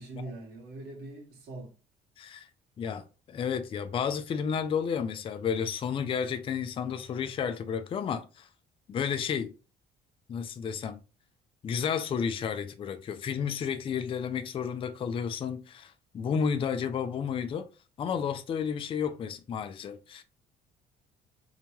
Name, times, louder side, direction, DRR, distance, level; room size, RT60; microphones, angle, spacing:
voice 1, 0.0-1.7, right 2 dB, 70° right, 1.3 m, -42 dB
voice 2, 2.2-2.5 2.8-8.5 8.9-9.5 10.3-11.0 11.6-17.7 18.0-20.2, left 7 dB, 30° left, 0.3 m, -32 dB
2.8 x 2.1 x 2.9 m
cardioid pair, 110°, 17 cm